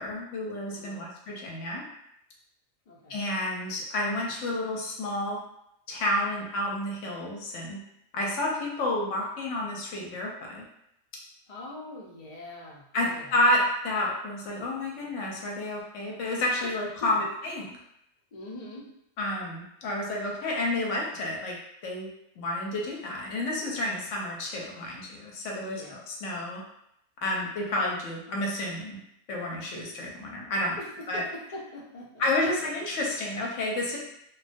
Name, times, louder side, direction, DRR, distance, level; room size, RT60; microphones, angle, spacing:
voice 1, 0.0-1.8 3.1-5.4 5.9-7.8 8.1-10.7 12.9-17.6 19.2-21.6 21.8-22.1 22.4-26.6 27.2-29.0 29.3-30.8 31.1-31.2 32.2-34.0, left 1 dB, 70° left, -2 dB, 0.8 m, -30 dB
voice 2, 0.7-1.1 2.9-3.2 11.5-13.3 16.6-16.7 17.0-17.1 18.3-18.8 25.6-26.0 30.8-32.5, left 1 dB, 90° left, -4 dB, 0.3 m, -43 dB
2.2 x 2.2 x 2.5 m, 0.79 s
omnidirectional pair, 1.5 m